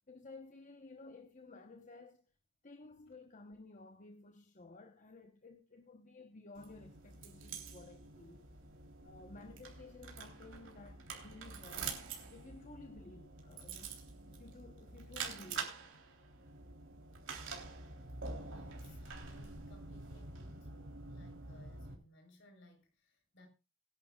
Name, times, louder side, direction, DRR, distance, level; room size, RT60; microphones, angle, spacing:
voice 1, 0.1-2.2 2.6-8.4 9.0-11.9 12.3-15.7, left 3 dB, 35° left, 1.0 m, -55 dB
sound 1, 6.6-21.9, right 4 dB, 60° right, 3.4 m, -47 dB
voice 2, 18.4-23.5, left 1 dB, 55° left, 4.3 m, -62 dB
22.0 x 10.5 x 2.4 m
head